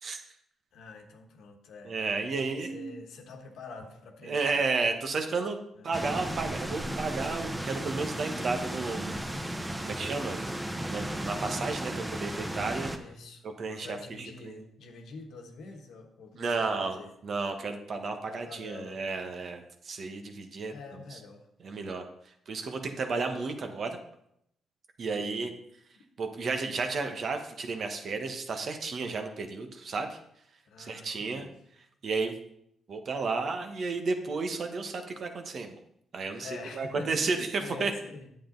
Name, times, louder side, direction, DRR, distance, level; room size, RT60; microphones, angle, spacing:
voice 1, 0.7-4.6 5.7-6.0 12.9-13.4 13.7-17.1 18.3-19.2 20.7-21.5 23.2-23.4 25.2-25.6 30.6-31.6 36.4-38.3, left 3 dB, 80° left, 4 dB, 1.2 m, -46 dB
voice 2, 1.8-3.1 4.3-5.6 5.8-9.5 9.8-10.4 10.8-12.9 13.4-14.0 14.4-14.6 16.4-17.0 17.2-20.7 21.6-22.0 22.5-24.0 25.0-25.5 26.2-30.2 30.8-31.5 32.0-32.3 32.9-35.8 36.1-37.9, right 4 dB, 60° right, 5 dB, 1.3 m, -32 dB
sound 1, 5.9-13.0, right 1 dB, 15° right, 1.2 m, -35 dB
8.6 x 7.6 x 3.9 m, 0.75 s
supercardioid pair, 60°, 0 cm